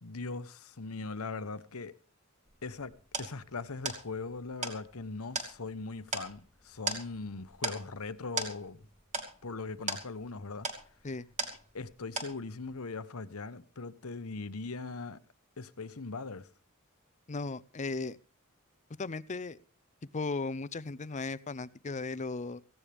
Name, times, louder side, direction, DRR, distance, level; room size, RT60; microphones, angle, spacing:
voice 1, 0.0-1.9 2.6-8.9 9.4-10.7 11.7-15.2 15.6-16.5, left 3 dB, 80° left, 1.0 m, -40 dB
sound 1, 2.5-11.9 12.2-12.7, right 3 dB, 35° right, 3.0 m, -39 dB
voice 2, 17.3-18.2 19.0-19.6 20.1-22.6, left 3 dB, 35° left, 0.6 m, -36 dB
17.0 x 16.5 x 3.5 m
head